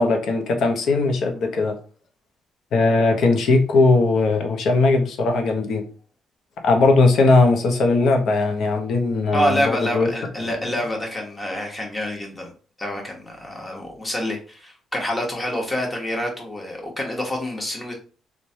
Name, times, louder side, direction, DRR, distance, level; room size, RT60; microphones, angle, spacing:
voice 1, 0.0-1.7 2.7-5.8 6.6-10.1, left 3 dB, 70° left, 3 dB, 0.6 m, -19 dB
voice 2, 9.3-12.5 12.8-18.0, left 1 dB, 20° left, 0 dB, 1.0 m, -27 dB
3.1 x 2.1 x 2.7 m, 0.39 s
cardioid pair, 90°, 0 cm